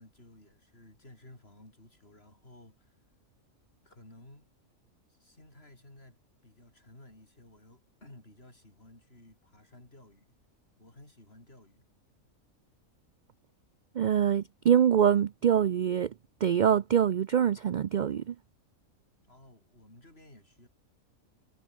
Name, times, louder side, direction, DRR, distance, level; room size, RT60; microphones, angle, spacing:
voice 1, 0.0-3.0 3.8-4.5 5.1-10.4 10.8-11.8 19.3-20.7, left 1 dB, 45° left, 6.8 m, -55 dB
voice 2, 13.9-16.1 16.4-18.3, right 9 dB, 70° right, 0.4 m, -24 dB
omnidirectional pair, 1.4 m